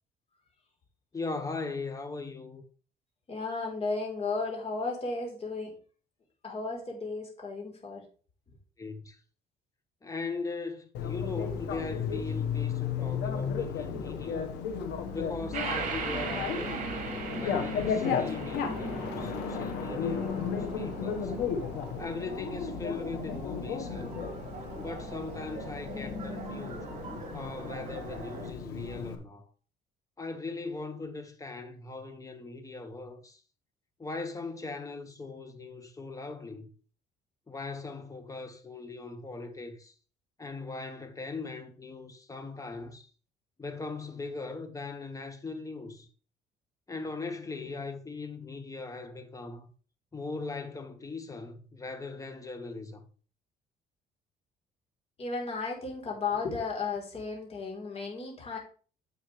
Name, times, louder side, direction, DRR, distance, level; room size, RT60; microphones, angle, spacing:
voice 1, 1.1-2.6 8.8-9.2 10.0-14.5 15.1-16.8 17.3-21.3 22.0-24.2 24.7-26.9 27.3-29.5 30.2-33.4 34.0-36.7 37.5-39.9 40.4-43.1 43.6-46.1 46.9-49.7 50.1-53.0, left 3 dB, 20° left, 1.5 m, -39 dB
voice 2, 3.3-5.7 6.4-8.0 55.2-58.6, left 4 dB, 35° left, 4.0 m, -34 dB
Bicycle, 10.9-29.1, left 6 dB, 90° left, 1.5 m, -34 dB
sound 1, 15.5-28.5, right 4 dB, 50° right, 2.7 m, -40 dB
10.0 x 7.2 x 3.3 m
cardioid pair, 110°, 17 cm